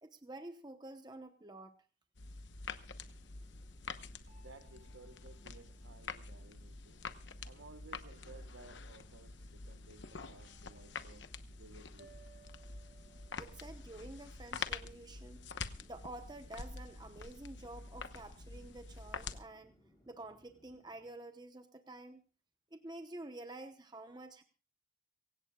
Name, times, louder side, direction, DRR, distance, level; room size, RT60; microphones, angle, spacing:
voice 1, 0.0-1.8 13.4-15.4 15.8-19.7 20.1-22.2 22.7-24.4, right 2 dB, 20° right, 0.9 m, -49 dB
sound 1, 2.1-19.4, left 4 dB, 70° left, 1.0 m, -47 dB
Chatter / Fixed-wing aircraft airplane, 2.3-21.2, equal, 20° left, 7.6 m, -68 dB
sound 2, 4.3-6.6 8.0-9.0 10.0-11.3 12.0-14.3, right 6 dB, 55° right, 6.0 m, -66 dB
voice 2, 4.4-7.0 7.4-11.3 11.6-12.2 14.8-14.9, right 3 dB, 80° right, 1.0 m, -57 dB
24.5 x 16.5 x 2.3 m
head